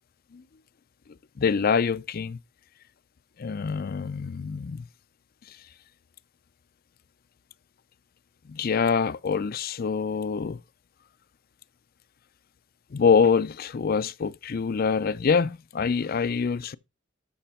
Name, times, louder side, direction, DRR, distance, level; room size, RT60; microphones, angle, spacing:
voice 1, 1.4-2.4 3.4-4.8 5.5-5.6 8.5-10.6 12.9-16.8, left 6 dB, 50° left, 0.4 m, -25 dB
13.0 x 5.9 x 4.3 m
head